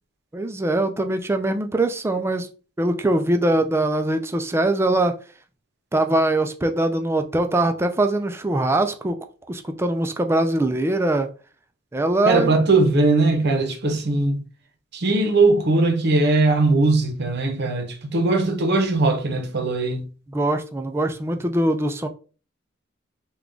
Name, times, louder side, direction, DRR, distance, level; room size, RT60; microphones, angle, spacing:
voice 1, 0.3-2.5 2.8-5.2 5.9-9.2 9.5-11.3 11.9-12.6 20.3-22.1, right 2 dB, 10° right, 0.3 m, -22 dB
voice 2, 12.2-14.4 14.9-20.1, right 3 dB, 55° right, 0.7 m, -20 dB
3.4 x 2.3 x 3.8 m
head